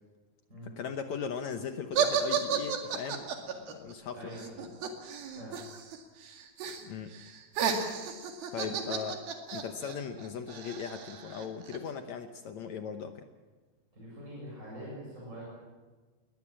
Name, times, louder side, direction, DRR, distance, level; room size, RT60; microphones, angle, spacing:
voice 1, 0.6-4.4 6.8-7.2 8.5-9.2 9.5-13.3, left 6 dB, 75° left, 7 dB, 1.7 m, -38 dB
sound 1, 1.9-6.0 6.2-6.8 7.1-11.8, right 7 dB, 70° right, 3.9 m, -33 dB
voice 2, 13.9-15.4, equal, 20° right, -5 dB, 7.3 m, -44 dB
21.0 x 20.5 x 7.6 m, 1.3 s
omnidirectional pair, 4.5 m